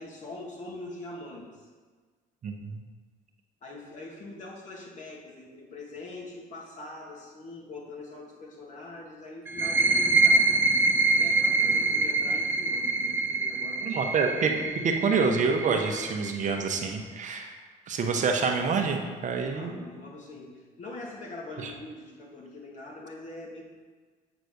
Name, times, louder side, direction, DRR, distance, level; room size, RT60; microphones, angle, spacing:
voice 1, 0.0-1.7 3.6-10.5 11.1-14.1 14.5-14.6 19.5-23.6, left 2 dB, 45° left, -2 dB, 2.0 m, -43 dB
voice 2, 2.4-2.8 13.8-14.5 14.8-17.5 17.9-19.8 21.6-21.7, right 5 dB, 45° right, 3 dB, 0.9 m, -27 dB
sound 1, 9.5-16.9, right 3 dB, 15° right, 0.4 m, -25 dB
8.0 x 4.1 x 6.4 m, 1.5 s
cardioid pair, 110°, 17 cm